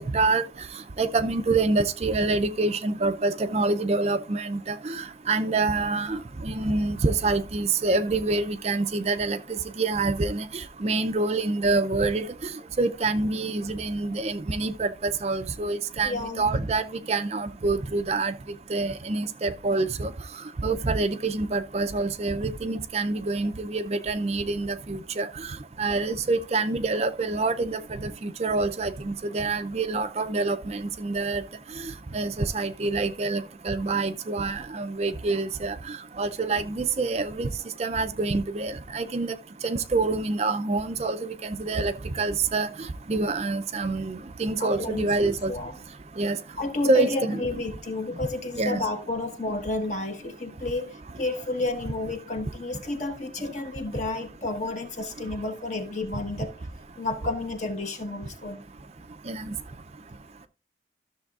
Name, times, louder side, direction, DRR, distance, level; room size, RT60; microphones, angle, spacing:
voice 1, 0.1-0.4 1.0-12.3 12.8-18.3 18.7-20.1 20.6-31.4 32.1-37.5 37.8-39.3 39.6-45.5 46.2-46.4 46.9-47.4 48.5-48.8 59.3-59.5, right 3 dB, 35° right, 0.5 m, -26 dB
voice 2, 16.0-16.5 44.6-45.7 46.6-56.5 57.0-58.6, left 2 dB, 40° left, 1.2 m, -31 dB
13.0 x 6.8 x 2.4 m
head